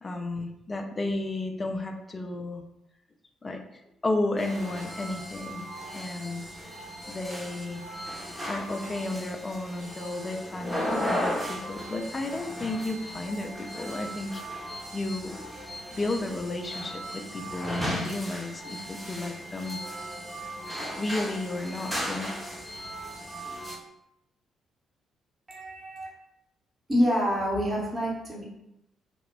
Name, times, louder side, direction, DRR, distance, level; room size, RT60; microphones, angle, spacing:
voice 1, 0.0-2.6 3.4-3.6 4.0-5.7 5.9-6.5 7.1-7.8 8.5-15.4 15.9-19.8 21.0-22.3, left 2 dB, 30° left, 4 dB, 0.4 m, -33 dB
sound 1, 4.4-23.8, equal, ahead, 0.8 m, -36 dB
voice 2, 25.5-26.1 26.9-28.4, equal, 25° right, -4 dB, 1.0 m, -27 dB
2.1 x 2.1 x 3.5 m, 0.85 s
figure-of-eight pair, 40°, 0 cm